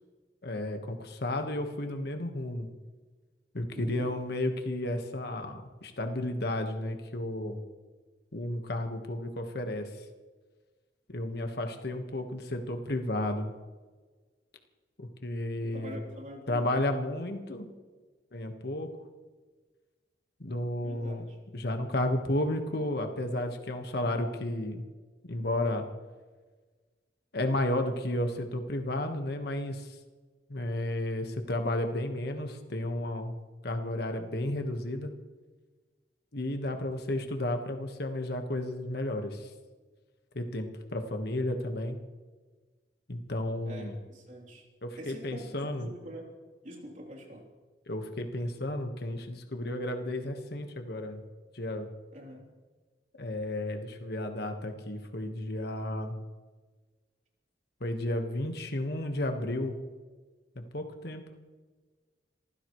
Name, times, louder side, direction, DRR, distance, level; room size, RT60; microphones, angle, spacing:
voice 1, 0.4-2.7 3.5-7.6 8.3-9.9 11.1-13.5 15.0-16.0 16.5-17.7 18.3-18.9 20.4-21.3 21.5-24.8 25.3-25.8 27.3-30.0 30.5-33.3 33.6-35.1 36.3-39.5 40.3-42.0 43.1-43.9 44.8-45.9 47.9-51.2 51.5-51.9 53.2-56.1 57.8-59.7 60.5-61.2, left 1 dB, 65° left, 5 dB, 1.5 m, -32 dB
voice 2, 3.8-4.2 15.7-17.0 20.8-21.2 43.7-44.7 45.0-45.5 45.8-46.3 46.6-47.5 52.1-52.5, right 1 dB, 45° right, 0 dB, 3.5 m, -45 dB
27.0 x 15.5 x 3.2 m, 1.4 s
head